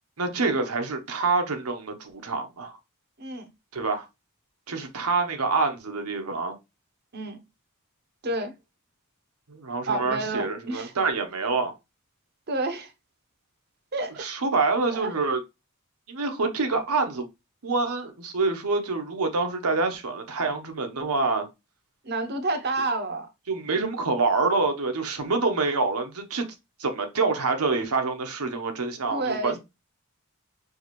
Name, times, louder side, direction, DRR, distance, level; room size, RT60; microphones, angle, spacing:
voice 1, 0.2-2.8 3.7-4.1 4.7-6.6 9.5-11.7 14.2-15.4 16.1-17.3 17.6-21.5 23.5-26.5 26.8-29.6, right 3 dB, 85° right, 0.9 m, -26 dB
voice 2, 3.2-3.5 7.1-7.4 8.2-8.5 9.9-10.9 12.5-12.9 13.9-14.2 14.9-15.1 22.0-23.3 29.1-29.6, right 2 dB, 45° right, 0.7 m, -29 dB
4.7 x 2.6 x 3.0 m
head